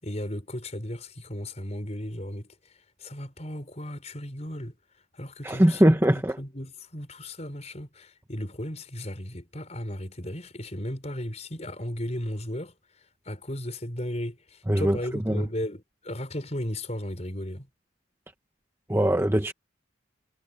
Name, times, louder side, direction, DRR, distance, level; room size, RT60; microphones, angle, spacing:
voice 1, 0.0-2.5 3.0-4.7 5.1-12.7 13.3-17.7, left 1 dB, 35° left, 5.8 m, -35 dB
voice 2, 5.4-6.4 14.7-15.0 15.3-15.4 18.9-19.5, right 1 dB, 10° right, 1.0 m, -21 dB
head